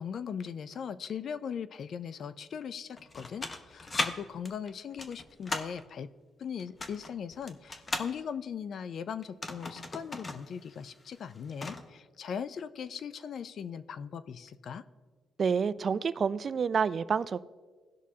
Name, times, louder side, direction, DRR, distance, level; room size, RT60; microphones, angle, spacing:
voice 1, 0.0-6.1 6.4-14.8, left 7 dB, 60° left, 0.4 m, -39 dB
sound 1, 3.0-4.1 4.4-5.8 6.6-8.1 9.2-10.4 10.7-10.8 11.2-11.8, left 2 dB, 30° left, 0.9 m, -36 dB
voice 2, 15.4-17.4, right 6 dB, 45° right, 0.3 m, -28 dB
17.5 x 6.1 x 2.8 m
cardioid pair, 90°, 0 cm